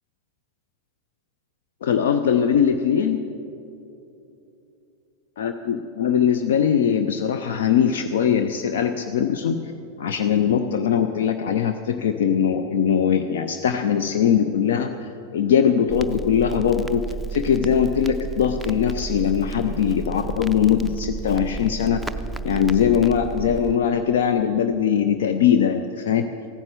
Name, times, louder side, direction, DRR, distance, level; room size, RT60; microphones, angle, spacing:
voice 1, 1.8-3.2 5.4-9.6 10.0-14.9 15.3-17.0 17.3-22.0 22.4-26.3, left 8 dB, 60° left, 7 dB, 0.6 m, -21 dB
Crackle, 15.9-23.7, right 5 dB, ahead, 0.5 m, -32 dB
15.5 x 9.6 x 6.7 m, 2.8 s
figure-of-eight pair, 90°, 0 cm